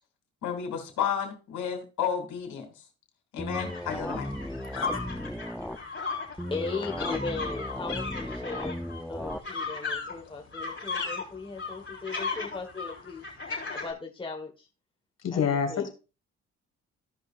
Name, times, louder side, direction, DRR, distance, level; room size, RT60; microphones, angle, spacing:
voice 1, 0.4-2.6 3.3-4.3, left 8 dB, 75° left, 2.9 m, -32 dB
sound 1, 3.4-5.8 6.4-9.4, left 1 dB, ahead, 0.6 m, -36 dB
sound 2, 3.5-13.9, left 4 dB, 40° left, 4.1 m, -36 dB
voice 2, 6.5-8.7 9.1-13.3 13.7-14.7 15.3-15.4 15.7-15.9, left 4 dB, 15° left, 1.5 m, -37 dB
voice 3, 15.2-15.9, left 7 dB, 60° left, 2.2 m, -27 dB
15.5 x 5.5 x 2.5 m
cardioid pair, 90°, 30 cm